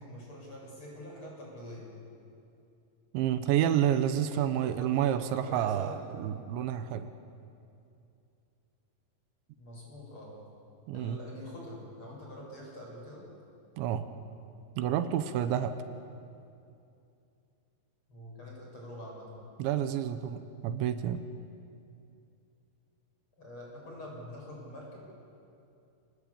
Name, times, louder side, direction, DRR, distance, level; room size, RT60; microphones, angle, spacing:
voice 1, 0.0-1.9 4.2-5.9 9.6-10.5 10.9-13.2 18.1-19.5 23.4-25.0, left 1 dB, 25° left, -3 dB, 8.3 m, -45 dB
voice 2, 3.1-7.1 10.9-11.2 13.8-14.1 14.8-15.8 19.6-21.2, right 10 dB, 85° right, 10 dB, 3.4 m, -29 dB
29.5 x 20.0 x 8.8 m, 2.6 s
omnidirectional pair, 5.2 m